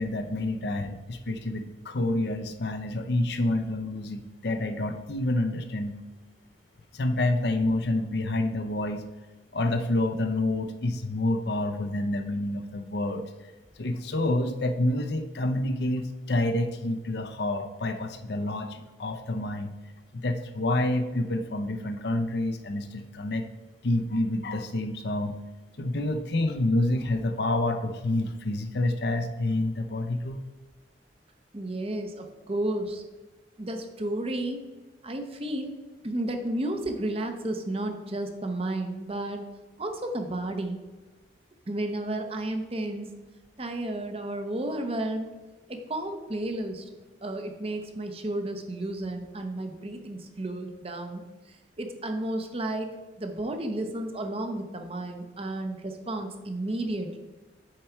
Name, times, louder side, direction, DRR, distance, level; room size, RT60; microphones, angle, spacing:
voice 1, 0.0-6.0 6.9-9.0 9.5-13.3 13.8-19.7 20.1-23.4 23.8-25.4 25.8-30.4, left 2 dB, 60° left, 7 dB, 0.6 m, -28 dB
voice 2, 31.5-33.0 33.6-34.6 35.0-35.7 36.0-39.4 39.8-40.8 41.7-43.1 43.6-45.3 45.7-46.8 47.2-52.9 53.2-57.2, right 1 dB, 30° right, 5 dB, 0.7 m, -32 dB
7.5 x 4.6 x 4.5 m, 1.2 s
head